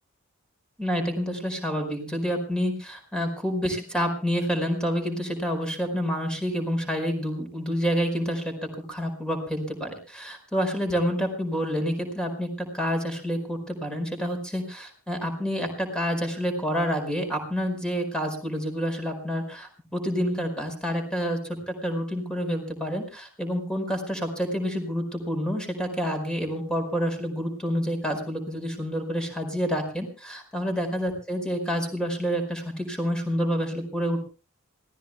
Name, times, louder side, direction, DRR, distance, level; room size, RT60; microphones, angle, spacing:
voice 1, 0.8-8.5 8.9-34.2, equal, 5° left, 5 dB, 4.8 m, -28 dB
27.0 x 17.5 x 2.2 m, 0.34 s
head